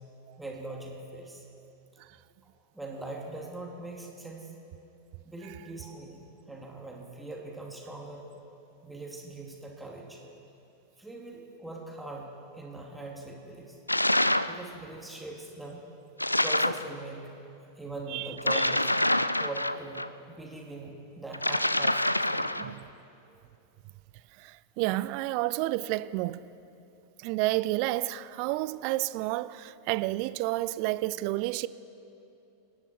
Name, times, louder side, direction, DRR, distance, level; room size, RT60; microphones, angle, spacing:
voice 1, 0.4-1.4 2.4-4.5 5.2-8.3 8.8-10.2 11.0-12.3 12.5-13.8 14.4-15.8 16.4-17.3 17.8-18.9 19.4-20.0 20.3-22.7 23.3-23.4, right 2 dB, 5° right, 2.5 m, -41 dB
sound 1, 13.9-14.6 16.2-16.9 18.4-20.1 21.3-22.7, left 1 dB, 85° left, 0.3 m, -26 dB
voice 2, 24.4-26.4 27.2-31.7, right 18 dB, 45° right, 0.4 m, -30 dB
26.0 x 10.5 x 4.5 m
figure-of-eight pair, 90°, 0 cm